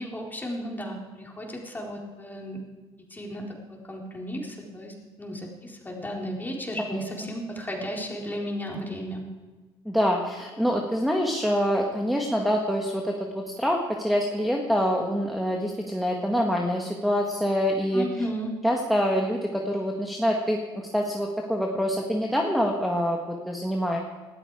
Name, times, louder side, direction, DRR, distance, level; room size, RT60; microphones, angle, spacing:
voice 1, 0.0-2.6 3.1-3.4 3.7-9.3 17.9-18.5, equal, 15° left, -1 dB, 4.1 m, -34 dB
voice 2, 9.9-18.3 18.6-24.0, equal, ahead, 1 dB, 1.8 m, -26 dB
19.5 x 13.5 x 4.9 m, 1.3 s
supercardioid pair, 85°, 12 cm